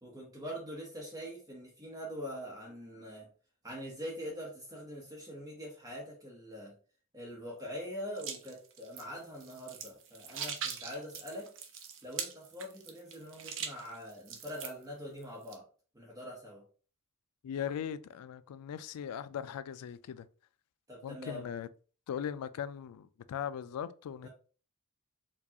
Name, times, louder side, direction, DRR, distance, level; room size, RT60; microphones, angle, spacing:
voice 1, 0.0-3.3 3.6-6.7 7.1-11.5 12.0-15.6 15.9-16.6 20.9-21.5 24.2-24.3, equal, 15° right, 0.9 m, -43 dB
sound 1, 8.2-14.8 15.2-15.5, right 7 dB, 60° right, 0.6 m, -41 dB
voice 2, 17.4-20.3 21.0-21.7 22.1-24.3, left 8 dB, 90° left, 0.3 m, -39 dB
4.5 x 2.3 x 2.8 m
head